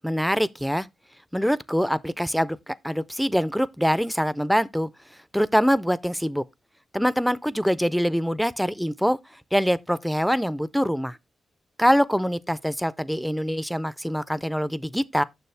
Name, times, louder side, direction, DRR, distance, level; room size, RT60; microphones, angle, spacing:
voice 1, 0.0-0.9 1.3-6.4 6.9-11.2 11.8-15.2, equal, ahead, 0.4 m, -24 dB
6.8 x 6.4 x 3.3 m
cardioid pair, 105°, 0 cm